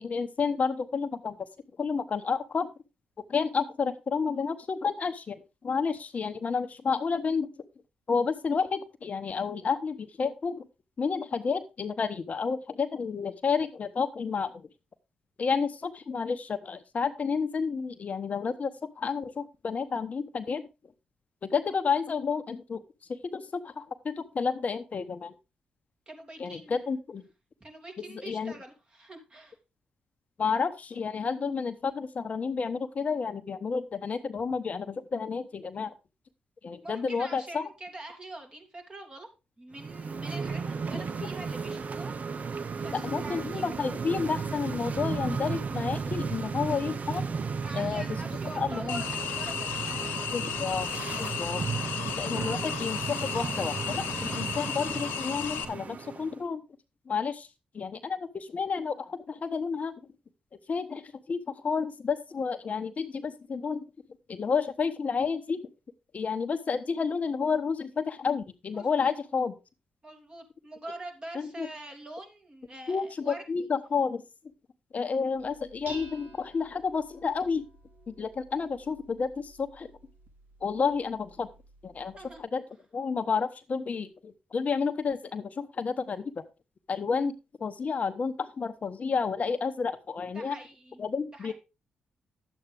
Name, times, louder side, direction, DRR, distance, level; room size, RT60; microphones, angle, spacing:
voice 1, 0.0-1.4 1.8-2.7 3.3-5.4 5.6-7.5 8.1-10.6 11.0-14.5 15.4-20.6 21.4-22.8 23.3-25.3 26.4-27.2 28.3-28.5 30.4-35.9 36.6-37.7 40.9-41.0 42.9-47.2 47.7-48.0 48.6-49.0 50.3-50.9 51.2-51.6 52.2-56.6 57.1-57.5 57.7-59.9 60.7-61.0 61.3-63.8 64.3-65.6 66.1-69.5 71.4-71.7 72.9-74.2 74.9-77.6 78.1-79.9 80.6-81.5 81.8-82.1 82.5-82.6 82.9-86.2 86.9-87.3 87.6-90.5 91.0-91.5, left 5 dB, 50° left, 10 dB, 0.9 m, -30 dB
voice 2, 26.1-26.9 27.6-29.6 36.8-39.3 39.6-42.6 42.8-43.7 47.6-50.1 68.7-69.1 70.0-73.7 82.1-82.4 90.3-91.0 91.3-91.5, right 2 dB, 30° right, 2 dB, 2.9 m, -44 dB
sound 1, 39.7-56.4, right 5 dB, 50° right, 0.8 m, -34 dB
sound 2, 48.9-55.6, left 8 dB, 80° left, 1.0 m, -34 dB
Dishes pots and pans, 75.3-82.4, right 2 dB, 65° right, 1.8 m, -52 dB
10.5 x 8.1 x 3.4 m, 0.27 s
hypercardioid pair, 45°, 3 cm